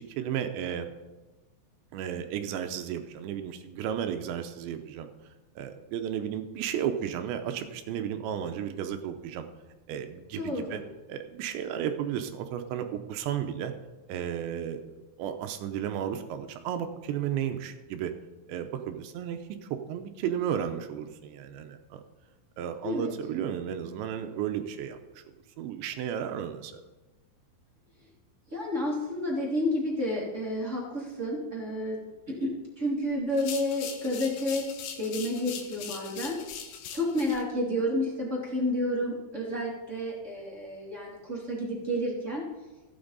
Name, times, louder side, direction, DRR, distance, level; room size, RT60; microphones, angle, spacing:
voice 1, 0.2-0.9 1.9-5.1 5.6-9.4 9.9-10.8 11.1-13.7 14.1-18.1 18.5-22.0 22.6-25.2 25.6-26.8, right 9 dB, 80° right, 7 dB, 2.8 m, -33 dB
voice 2, 10.4-10.8 22.8-23.1 28.5-32.0 32.3-32.5 32.8-34.6 35.0-36.4 36.9-42.4, left 1 dB, 25° right, -4 dB, 1.6 m, -30 dB
sound 1, 33.3-37.4, left 7 dB, 75° left, 3.6 m, -41 dB
16.0 x 8.8 x 4.0 m, 1.2 s
omnidirectional pair, 5.6 m